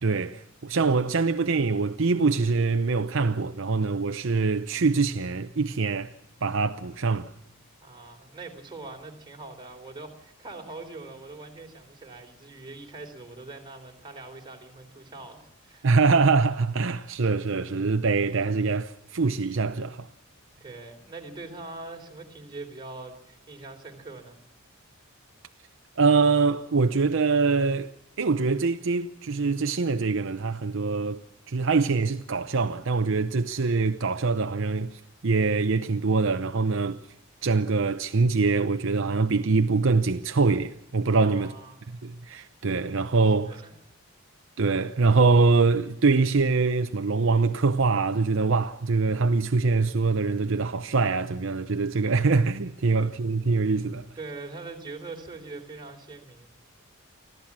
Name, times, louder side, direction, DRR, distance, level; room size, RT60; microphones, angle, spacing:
voice 1, 0.0-6.1 6.4-7.3 15.8-20.1 26.0-27.9 28.2-31.2 31.5-37.0 37.4-41.5 42.0-43.6 44.6-54.1, right 4 dB, 60° right, 0.7 m, -24 dB
voice 2, 7.8-15.9 20.6-24.4 41.2-41.8 43.4-43.8 54.2-56.5, right 3 dB, 20° right, 3.6 m, -42 dB
25.5 x 15.0 x 7.4 m
head